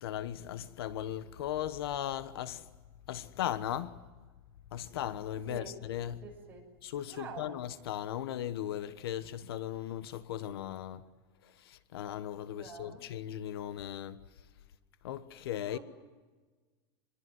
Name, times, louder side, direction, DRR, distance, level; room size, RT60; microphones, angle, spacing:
voice 1, 0.0-2.7 3.1-4.0 4.7-6.2 6.8-11.0 11.4-14.2 15.0-15.8, left 11 dB, 70° left, 1.2 m, -37 dB
voice 2, 6.2-6.7 7.1-7.6 12.5-13.1 15.7-15.8, right 4 dB, 15° right, 6.9 m, -46 dB
26.5 x 22.5 x 9.5 m
supercardioid pair, 170°, 13 cm